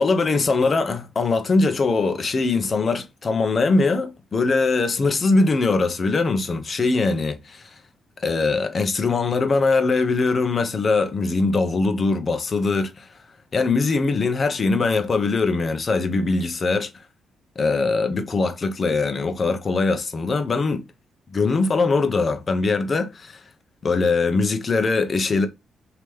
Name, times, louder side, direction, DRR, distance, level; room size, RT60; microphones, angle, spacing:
voice 1, 0.0-7.7 8.2-13.1 13.5-16.9 17.6-20.8 21.3-23.4 23.8-25.5, left 3 dB, 40° left, 0.8 m, -21 dB
3.1 x 2.9 x 3.4 m
cardioid pair, 85°, 0 cm